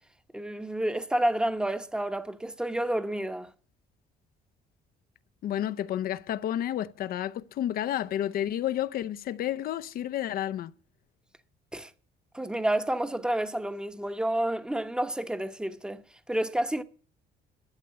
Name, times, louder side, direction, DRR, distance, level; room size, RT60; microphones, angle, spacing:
voice 1, 0.3-3.5 11.7-11.9 12.3-16.0 16.3-16.8, right 1 dB, 5° right, 0.9 m, -29 dB
voice 2, 5.4-10.7, left 11 dB, 60° left, 0.7 m, -31 dB
12.0 x 6.7 x 9.4 m
cardioid pair, 110°, 17 cm